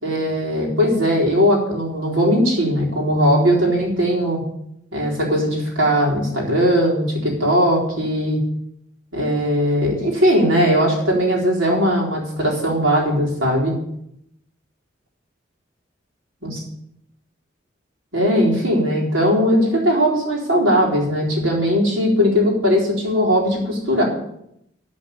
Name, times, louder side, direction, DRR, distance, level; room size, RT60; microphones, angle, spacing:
voice 1, 0.0-4.4 4.9-8.4 9.1-13.7 16.4-16.6 18.1-24.0, equal, 90° right, -3 dB, 4.1 m, -19 dB
11.5 x 5.3 x 8.7 m, 0.76 s
head